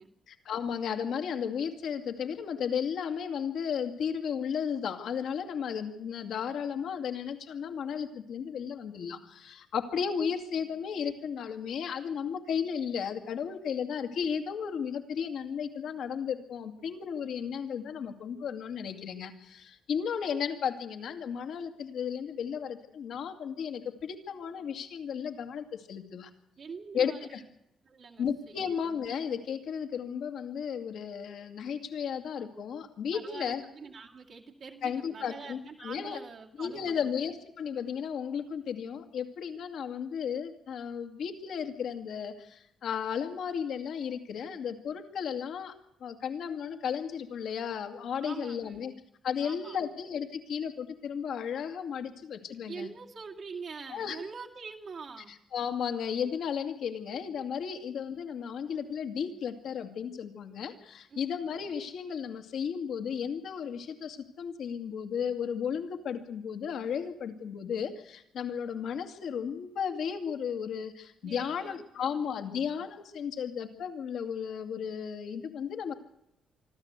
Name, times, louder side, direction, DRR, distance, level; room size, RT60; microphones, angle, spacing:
voice 1, 0.3-26.3 26.9-27.4 28.2-33.6 34.8-36.2 36.6-45.7 46.0-48.9 49.2-52.9 53.9-54.2 55.5-75.9, left 7 dB, 70° left, 6 dB, 2.3 m, -34 dB
voice 2, 26.6-27.5 27.8-28.7 33.1-37.0 48.2-48.8 49.4-50.0 52.7-55.3 61.1-61.4 71.2-72.6, right 5 dB, 55° right, -2 dB, 2.2 m, -45 dB
25.5 x 12.5 x 8.2 m, 0.80 s
cardioid pair, 90°, 0 cm